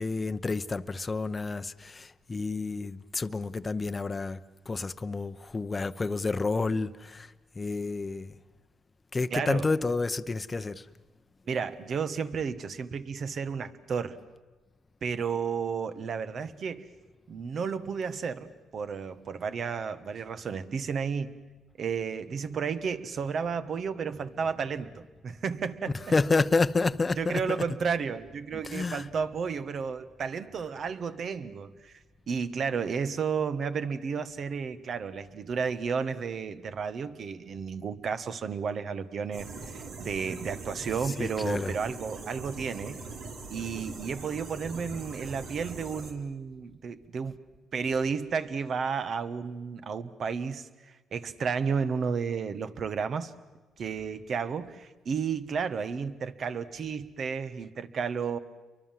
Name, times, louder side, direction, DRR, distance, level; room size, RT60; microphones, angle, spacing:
voice 1, 0.0-4.4 4.7-7.3 7.6-8.3 9.1-10.8 26.1-27.4 28.6-29.0 41.2-41.7, left 3 dB, 25° left, 0.8 m, -29 dB
voice 2, 9.3-9.7 11.5-14.2 15.0-16.9 17.3-21.4 21.8-26.0 27.2-43.0 43.5-47.4 47.7-53.3 53.8-58.4, right 6 dB, 55° right, 1.5 m, -32 dB
sound 1, 39.3-46.1, right 3 dB, 75° right, 3.8 m, -41 dB
30.0 x 23.5 x 7.6 m
cardioid pair, 90°, 0 cm